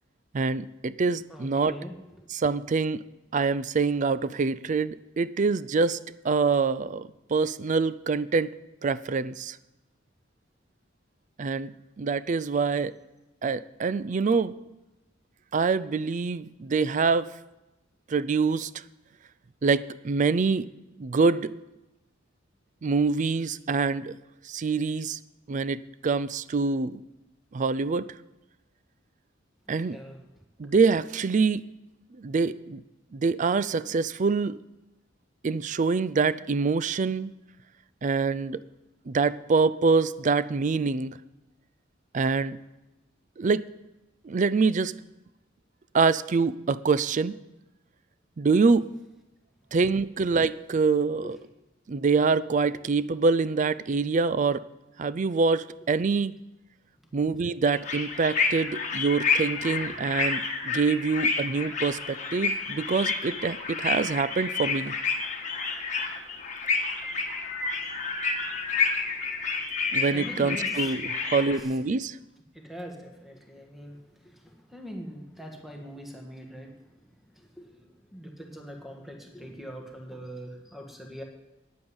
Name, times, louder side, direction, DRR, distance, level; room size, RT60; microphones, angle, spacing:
voice 1, 0.3-1.8 2.3-3.0 3.3-6.0 6.2-8.5 8.8-9.6 11.4-11.7 12.0-12.9 13.4-14.5 15.5-17.3 18.1-18.7 19.6-20.7 21.0-21.5 22.8-24.2 24.4-25.2 25.5-27.0 27.5-28.1 29.7-30.0 30.6-31.7 32.2-32.8 33.1-34.6 35.4-37.3 38.0-38.6 39.1-41.2 42.1-42.6 43.4-43.7 44.2-44.9 45.9-47.3 48.4-48.9 49.7-51.4 51.9-54.6 55.0-56.3 57.1-64.9 69.9-72.2, right 4 dB, 40° right, 17 dB, 0.4 m, -25 dB
voice 2, 1.3-1.9 29.9-30.2 51.2-51.3 59.9-60.0 70.1-70.7 71.1-71.5 72.5-74.0 74.2-74.3 74.7-76.7 77.6-77.7 78.1-81.2, equal, ahead, 2 dB, 1.6 m, -42 dB
sound 1, 57.6-71.6, left 4 dB, 40° left, 1.4 m, -29 dB
9.7 x 8.8 x 7.9 m, 1.0 s
head